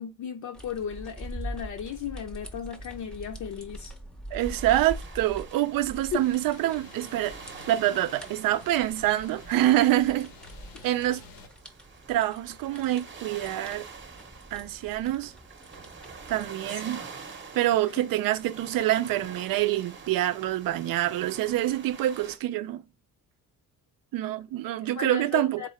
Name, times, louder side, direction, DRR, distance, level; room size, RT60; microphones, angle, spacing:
voice 1, 0.0-3.9 6.1-6.2 24.6-25.7, left 8 dB, 60° left, 0.6 m, -35 dB
sound 1, 0.5-16.5, right 1 dB, 5° left, 0.6 m, -44 dB
voice 2, 4.3-7.4 7.7-10.3 10.8-11.2 12.1-13.9 14.5-15.3 16.3-17.1 17.5-22.8 24.1-25.7, right 14 dB, 75° right, 0.5 m, -26 dB
sound 2, 4.4-22.4, right 5 dB, 35° right, 0.8 m, -46 dB
sound 3, 6.2-11.5, left 4 dB, 90° left, 1.0 m, -51 dB
3.7 x 3.7 x 3.1 m
cardioid pair, 135°, 34 cm